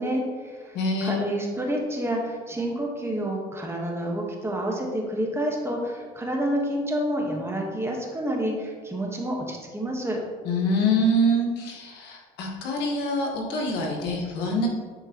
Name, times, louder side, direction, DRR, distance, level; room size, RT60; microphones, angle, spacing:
voice 1, 0.0-10.2, right 1 dB, 15° right, -1 dB, 1.4 m, -29 dB
voice 2, 0.7-1.3 10.4-14.7, equal, 85° left, 0 dB, 1.5 m, -25 dB
10.5 x 4.5 x 3.0 m, 1.5 s
cardioid pair, 110°, 17 cm